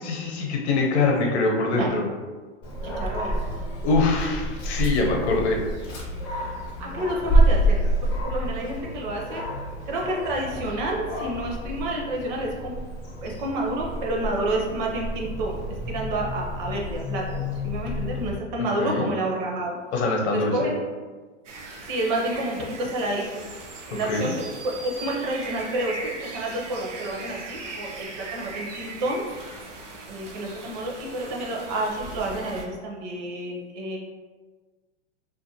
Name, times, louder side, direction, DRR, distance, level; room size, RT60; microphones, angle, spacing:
voice 1, 0.0-2.0 3.8-5.6 6.4-6.5 18.8-19.1 19.9-20.7 24.1-24.3, left 3 dB, 65° left, 0 dB, 0.8 m, -23 dB
voice 2, 1.5-1.9 2.8-3.4 6.8-9.4 9.9-12.8 13.2-19.8 20.3-20.8 21.9-23.4 23.9-24.3 24.6-29.3 30.1-34.0, right 1 dB, 40° right, -1 dB, 0.6 m, -29 dB
Dog, 2.6-18.3, right 1 dB, 15° left, 0.4 m, -28 dB
sound 1, 21.4-32.6, right 3 dB, 85° right, 0.7 m, -39 dB
2.5 x 2.5 x 2.7 m, 1.4 s
hypercardioid pair, 130°, 36 cm